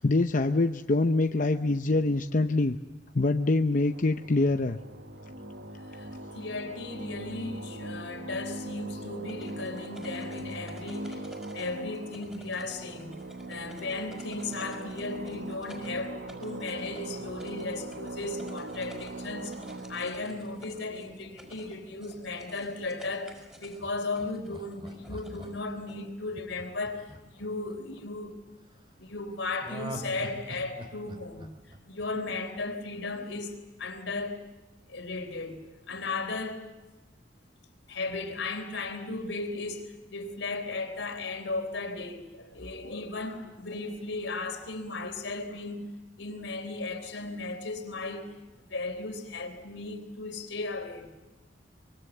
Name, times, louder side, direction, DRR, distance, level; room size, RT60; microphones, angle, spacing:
voice 1, 0.0-2.8 3.1-4.8, left 2 dB, 45° left, 0.7 m, -25 dB
sound 1, 3.8-21.9, right 2 dB, 65° right, 1.1 m, -41 dB
voice 2, 6.3-13.2 13.5-28.4 29.0-31.5 31.9-34.5 34.9-36.7 37.9-45.9 46.2-48.3 48.7-51.1, left 3 dB, 80° left, 3.7 m, -36 dB
sound 2, 9.1-26.1, equal, 5° right, 5.2 m, -53 dB
Laughter, 23.8-28.0 29.6-32.6 33.0-33.1, right 1 dB, 25° right, 2.8 m, -43 dB
24.5 x 23.0 x 7.9 m
head